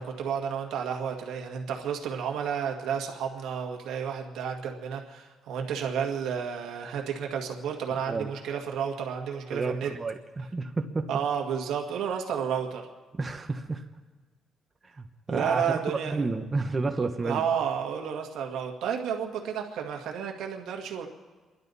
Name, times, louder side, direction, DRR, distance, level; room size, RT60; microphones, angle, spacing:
voice 1, 0.0-9.9 11.1-12.8 15.3-16.3 17.2-21.1, right 7 dB, 80° right, 2 dB, 1.8 m, -31 dB
voice 2, 9.5-11.1 13.2-13.8 14.9-17.4, right 3 dB, 25° right, 5 dB, 1.0 m, -31 dB
30.0 x 11.5 x 4.1 m, 1.4 s
cardioid pair, 90°, 0 cm